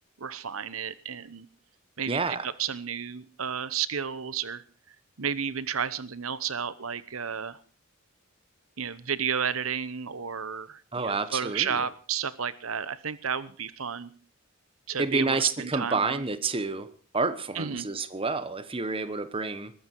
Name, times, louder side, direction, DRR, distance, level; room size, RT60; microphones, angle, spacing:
voice 1, 0.2-1.5 2.0-4.6 5.2-7.6 8.8-14.1 14.9-16.2 17.5-17.9, right 7 dB, 85° right, 1.0 m, -32 dB
voice 2, 2.1-2.5 10.9-11.7 15.0-16.9 17.1-19.7, right 3 dB, 25° right, 1.1 m, -29 dB
20.5 x 14.5 x 4.7 m
head